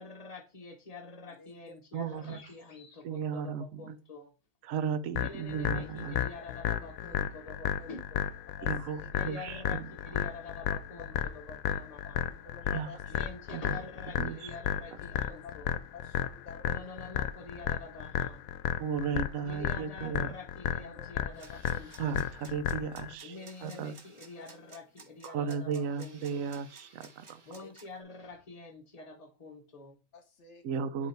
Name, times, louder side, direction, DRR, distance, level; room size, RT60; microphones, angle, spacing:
voice 1, 0.0-4.3 5.1-8.3 9.1-12.2 13.1-15.7 16.6-18.4 19.4-22.3 23.2-26.5 27.4-30.0 31.0-31.1, left 3 dB, 30° left, 1.0 m, -47 dB
voice 2, 1.3-1.8 7.5-7.6 8.6-9.1 12.5-13.3 15.2-15.6 15.9-16.8 20.8-21.1 23.2-23.5 24.4-24.5 27.5-27.7 30.1-30.6, left 5 dB, 60° left, 1.3 m, -51 dB
voice 3, 1.9-2.4 3.0-4.0 4.6-6.3 8.6-9.9 12.7-12.9 13.5-13.8 14.2-14.5 18.8-20.3 22.0-24.0 25.2-27.4 30.6-31.1, right 6 dB, 75° right, 1.0 m, -35 dB
sound 1, 5.1-23.1, left 10 dB, 80° left, 1.0 m, -33 dB
sound 2, 21.3-28.0, right 4 dB, 30° right, 0.6 m, -55 dB
8.0 x 3.1 x 4.4 m
omnidirectional pair, 1.4 m